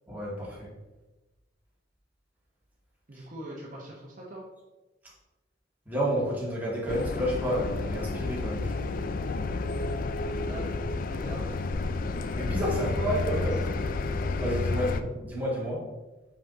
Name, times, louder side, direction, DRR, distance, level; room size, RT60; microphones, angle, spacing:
voice 1, 0.1-0.7 5.8-8.9 12.3-13.7 14.4-15.8, equal, 10° right, -6 dB, 1.8 m, -30 dB
voice 2, 3.1-4.4 10.4-11.5 12.7-13.7 14.7-14.9, right 1 dB, 45° right, -3 dB, 1.0 m, -41 dB
sound 1, 6.9-15.0, left 3 dB, 50° left, 0.4 m, -31 dB
5.4 x 4.9 x 3.8 m, 1.1 s
head